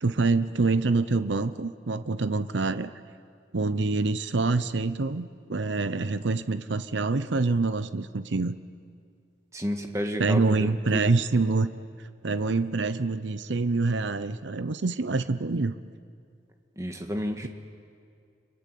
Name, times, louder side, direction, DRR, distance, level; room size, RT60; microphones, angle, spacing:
voice 1, 0.0-2.9 3.5-8.6 10.2-11.7 12.0-15.7, right 3 dB, 75° right, 12 dB, 0.7 m, -26 dB
voice 2, 9.5-11.1 16.8-17.5, equal, 15° right, 5 dB, 1.7 m, -31 dB
30.0 x 23.5 x 8.4 m, 2.3 s
head